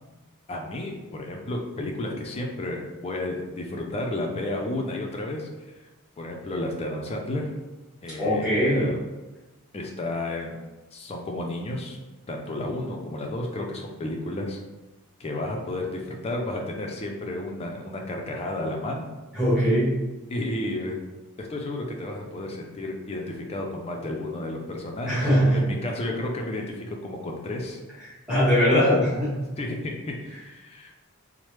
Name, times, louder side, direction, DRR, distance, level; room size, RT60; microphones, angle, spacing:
voice 1, 0.5-5.5 6.2-7.5 8.0-9.0 9.7-10.5 10.9-12.0 12.3-14.6 15.2-19.1 20.3-21.0 21.4-27.8 29.6-31.1, left 1 dB, 30° left, 1 dB, 0.4 m, -32 dB
voice 2, 8.2-8.9 19.3-20.0 25.1-25.6 28.3-29.4, equal, 5° right, -12 dB, 1.1 m, -21 dB
3.1 x 2.1 x 3.1 m, 1.1 s
head